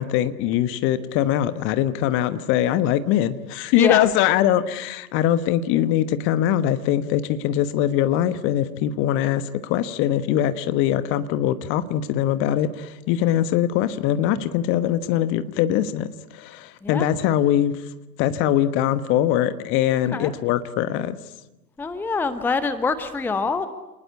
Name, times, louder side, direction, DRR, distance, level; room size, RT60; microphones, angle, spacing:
voice 1, 0.0-17.7 18.2-21.2, left 11 dB, 25° left, 13 dB, 1.1 m, -22 dB
voice 2, 21.8-23.7, left 4 dB, 5° left, 12 dB, 0.9 m, -25 dB
28.5 x 19.5 x 9.5 m, 1.0 s
figure-of-eight pair, 105°, 47 cm